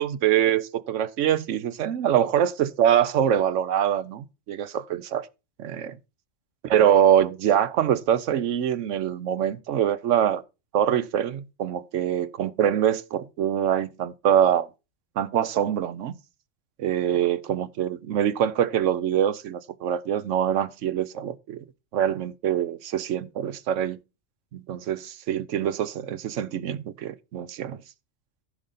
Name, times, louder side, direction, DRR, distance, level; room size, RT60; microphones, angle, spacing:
voice 1, 0.0-5.3 5.6-6.0 6.7-10.4 10.7-14.7 15.2-16.2 16.8-21.6 21.9-24.0 24.5-27.8, right 10 dB, 85° right, 1.1 m, -24 dB
14.5 x 5.2 x 4.1 m
omnidirectional pair, 1.3 m